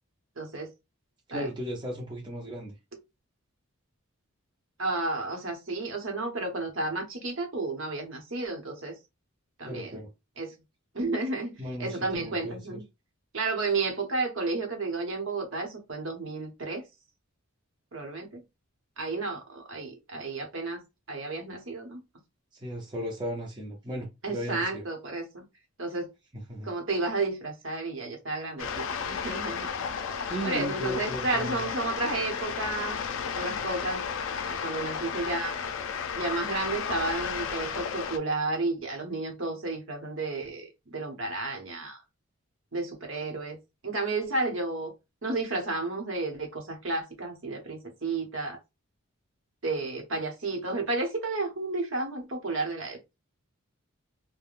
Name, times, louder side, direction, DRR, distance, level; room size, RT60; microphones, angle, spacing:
voice 1, 0.4-0.7 1.3-1.5 4.8-8.9 9.6-10.0 10.4-10.5 10.9-12.8 13.3-16.8 17.9-18.4 19.0-22.0 24.2-25.4 25.8-26.1 26.6-29.7 30.4-33.0 33.3-34.1 34.4-35.6 36.1-42.0 42.7-43.6 43.8-44.9 45.2-48.6 49.6-53.0, right 3 dB, 60° right, 1.0 m, -32 dB
voice 2, 1.3-2.7 9.6-10.1 11.6-12.8 22.5-24.8 26.3-26.7 30.3-31.7, right 1 dB, 20° right, 0.6 m, -36 dB
sound 1, 28.6-38.2, left 6 dB, 65° left, 0.4 m, -33 dB
3.5 x 2.1 x 2.4 m
head